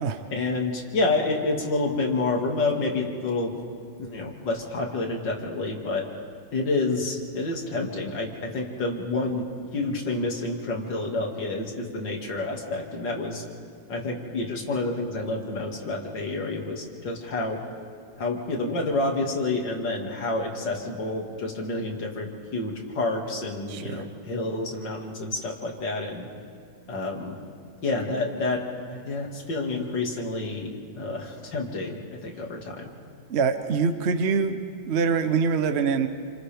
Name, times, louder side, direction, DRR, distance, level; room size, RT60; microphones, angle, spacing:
voice 1, 0.3-3.5 4.0-6.0 6.5-8.3 8.5-9.4 9.7-13.4 13.9-17.6 18.2-26.3 26.9-27.3 27.8-28.6 28.9-30.7 31.0-32.9, left 2 dB, 60° left, 0 dB, 2.8 m, -28 dB
voice 2, 23.7-24.0 33.3-34.6 34.9-36.1, right 5 dB, 55° right, 8 dB, 0.7 m, -24 dB
29.0 x 26.0 x 3.5 m, 2.2 s
omnidirectional pair, 2.2 m